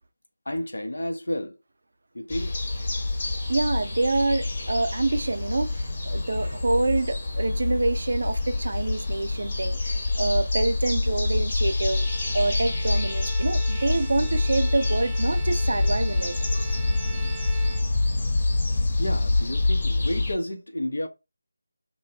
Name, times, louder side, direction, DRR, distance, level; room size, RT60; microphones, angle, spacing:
voice 1, 0.5-1.6 2.1-2.6 19.0-21.1, left 1 dB, 70° left, 0.7 m, -31 dB
sound 1, 2.3-20.3, left 2 dB, 40° left, 1.1 m, -26 dB
voice 2, 3.5-12.1 12.3-16.6, right 2 dB, 60° right, 0.5 m, -26 dB
Bowed string instrument, 11.7-18.4, right 5 dB, ahead, 0.5 m, -44 dB
3.0 x 2.0 x 2.7 m
figure-of-eight pair, 160°, 0 cm